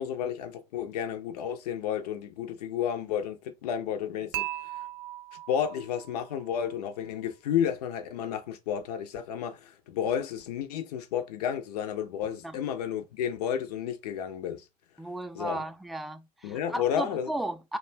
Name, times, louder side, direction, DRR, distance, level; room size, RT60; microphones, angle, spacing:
voice 1, 0.0-4.4 4.7-4.8 5.5-14.7 15.3-15.6 16.4-17.3, left 9 dB, 80° left, 0.6 m, -31 dB
Dishes pots and pans / Chink clink, 4.3-6.5, right 15 dB, 65° right, 0.5 m, -38 dB
voice 2, 15.0-17.8, right 1 dB, ahead, 0.3 m, -35 dB
2.4 x 2.2 x 3.2 m
hypercardioid pair, 75°, 20 cm